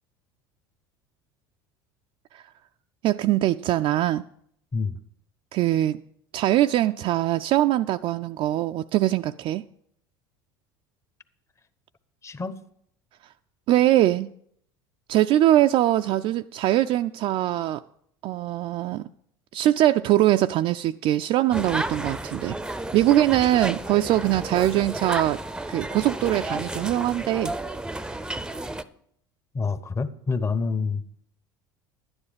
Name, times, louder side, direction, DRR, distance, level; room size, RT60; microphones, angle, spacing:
voice 1, 3.0-4.2 5.5-6.0 6.3-9.6 13.2-13.3 13.7-14.3 15.1-17.8 18.2-19.1 19.5-22.6 22.9-25.4 25.7-27.5, right 14 dB, 50° right, 0.3 m, -22 dB
voice 2, 12.2-12.5 29.5-31.0, left 4 dB, 25° left, 0.9 m, -27 dB
sound 1, 21.5-28.8, right 1 dB, 5° right, 0.6 m, -32 dB
11.5 x 9.8 x 5.1 m
hypercardioid pair, 80°, 12 cm